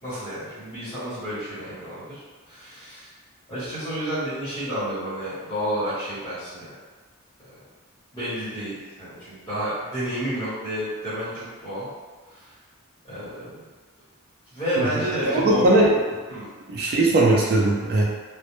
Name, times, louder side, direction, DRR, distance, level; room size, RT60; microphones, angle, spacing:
voice 1, 0.0-3.1 3.5-6.8 8.1-11.9 12.3-12.5 13.0-13.5 14.5-15.8 16.3-16.5, equal, 20° left, -13 dB, 0.9 m, -30 dB
voice 2, 15.2-15.9 16.7-18.0, right 2 dB, 45° right, -3 dB, 0.4 m, -19 dB
2.1 x 2.0 x 2.9 m, 1.4 s
head